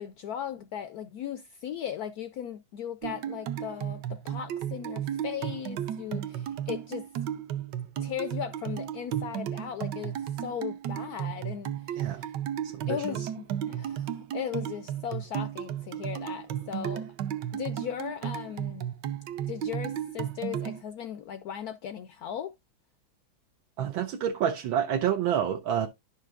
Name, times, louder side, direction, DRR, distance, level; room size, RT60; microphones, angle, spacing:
voice 1, 0.0-7.1 8.0-12.3 12.9-17.1 17.5-18.9 19.4-22.5, left 9 dB, 80° left, 0.8 m, -37 dB
sound 1, 3.0-20.8, right 10 dB, 70° right, 1.2 m, -34 dB
voice 2, 23.8-25.9, right 9 dB, 90° right, 1.7 m, -28 dB
11.0 x 5.8 x 2.4 m
omnidirectional pair, 2.1 m